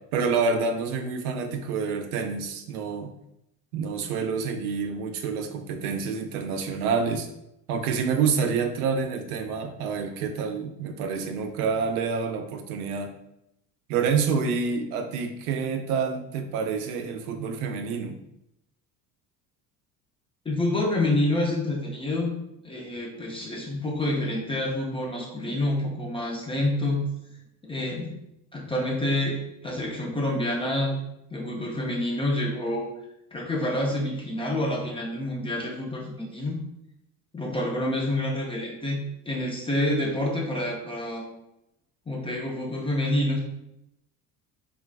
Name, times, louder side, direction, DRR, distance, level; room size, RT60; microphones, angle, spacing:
voice 1, 0.1-3.1 3.7-7.3 7.7-13.1 13.9-18.2, right 5 dB, 65° right, 6 dB, 0.5 m, -28 dB
voice 2, 20.5-22.3 22.6-27.0 27.6-28.1 28.5-31.0 31.3-32.9 33.3-36.6 37.3-41.3 42.1-43.4, left 1 dB, 10° left, -2 dB, 0.4 m, -28 dB
3.7 x 2.4 x 2.2 m, 0.82 s
figure-of-eight pair, 60°, 49 cm